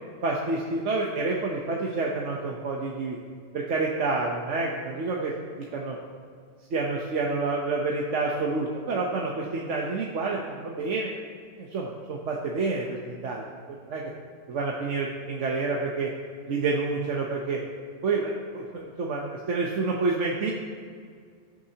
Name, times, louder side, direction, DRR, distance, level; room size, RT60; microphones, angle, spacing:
voice 1, 0.2-3.2 3.5-6.0 6.7-11.1 11.6-14.1 14.5-16.1 16.5-17.6 18.0-20.5, right 3 dB, 90° right, -1 dB, 1.3 m, -28 dB
19.5 x 7.9 x 2.9 m, 2.1 s
omnidirectional pair, 1.2 m